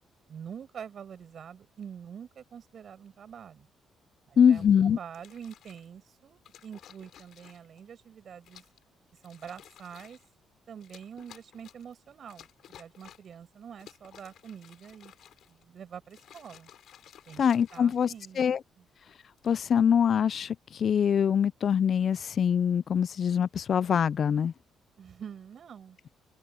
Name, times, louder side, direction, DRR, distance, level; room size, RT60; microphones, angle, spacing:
voice 1, 0.3-3.7 4.3-8.6 9.2-10.2 10.7-15.1 15.5-16.7 17.3-17.4 17.7-18.9 25.0-26.0, right 8 dB, 55° right, 5.7 m, -46 dB
voice 2, 4.4-5.0 17.4-18.1 18.4-18.6 19.4-24.5, left 8 dB, 55° left, 0.4 m, -24 dB
sound 1, 5.1-5.9 6.4-7.8 8.4-8.8 9.2-10.3 10.8-11.9 12.3-13.4 13.7-15.6 16.0-18.5 19.2-19.5, left 10 dB, 70° left, 4.5 m, -55 dB
open air
cardioid pair, 90°, 0 cm